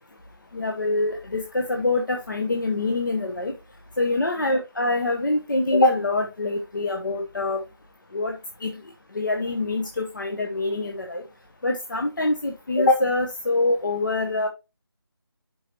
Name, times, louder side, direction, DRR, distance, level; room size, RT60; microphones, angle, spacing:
voice 1, 0.5-3.5 4.0-7.6 8.1-8.3 8.6-8.7 9.1-11.2 11.6-14.5, left 2 dB, 50° left, 3 dB, 1.3 m, -24 dB
11.5 x 4.9 x 3.0 m, 0.26 s
figure-of-eight pair, 160°, 13 cm